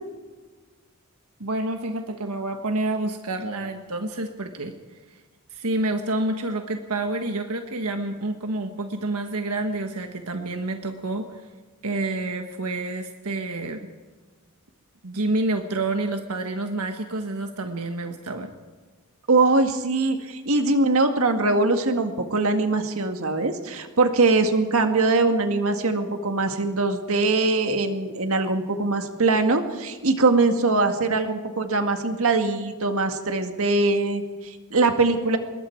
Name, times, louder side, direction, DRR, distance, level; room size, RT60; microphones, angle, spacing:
voice 1, 1.4-4.7 5.5-11.4 11.8-13.9 15.0-18.5, right 2 dB, 90° right, 5 dB, 1.5 m, -28 dB
voice 2, 19.3-35.4, right 3 dB, 65° right, 6 dB, 1.9 m, -22 dB
26.0 x 21.5 x 4.7 m, 1.4 s
head